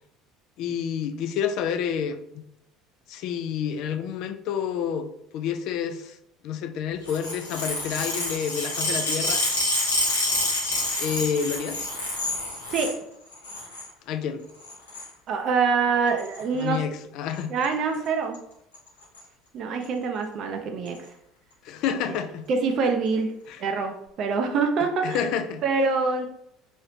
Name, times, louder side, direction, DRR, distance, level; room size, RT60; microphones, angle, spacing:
voice 1, 0.6-2.4 3.1-5.1 5.3-6.2 6.4-9.5 11.0-11.8 14.1-14.4 16.5-17.5 21.6-22.4 23.5-23.6 25.0-25.6, left 7 dB, 55° left, 7 dB, 0.4 m, -29 dB
sound 1, 7.1-13.0 13.3-13.9 14.6-15.1 16.2-16.4 17.4-17.7 17.9-18.1 18.3-18.4 18.7-19.2 19.8-19.9 20.9-21.0, left 2 dB, 75° left, 1.1 m, -28 dB
voice 2, 15.3-16.8 17.5-18.4 19.5-21.0 22.5-23.3 23.6-25.3 25.6-26.3, right 4 dB, 45° right, 4 dB, 0.5 m, -25 dB
3.3 x 2.7 x 2.6 m, 0.76 s
figure-of-eight pair, 65°, 0 cm